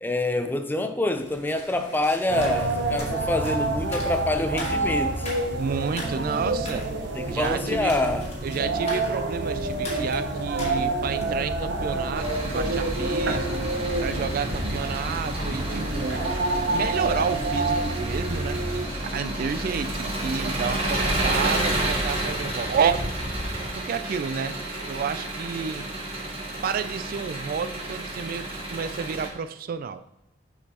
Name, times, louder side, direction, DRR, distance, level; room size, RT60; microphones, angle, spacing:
voice 1, 0.0-5.3 7.1-8.2, left 2 dB, 10° left, 7 dB, 0.5 m, -26 dB
sound 1, 1.2-11.4, left 1 dB, 35° left, 1.4 m, -41 dB
sound 2, 2.3-18.8, right 2 dB, 80° right, 0.9 m, -28 dB
voice 2, 5.6-7.0 7.3-8.0 8.4-13.6 14.0-16.2 16.7-18.6 19.1-23.1 23.6-24.6 24.9-25.9 26.6-30.0, right 6 dB, 55° right, 11 dB, 0.3 m, -30 dB
Engine, 12.1-29.3, right 1 dB, 35° right, 1.5 m, -30 dB
6.6 x 5.1 x 2.9 m, 0.88 s
head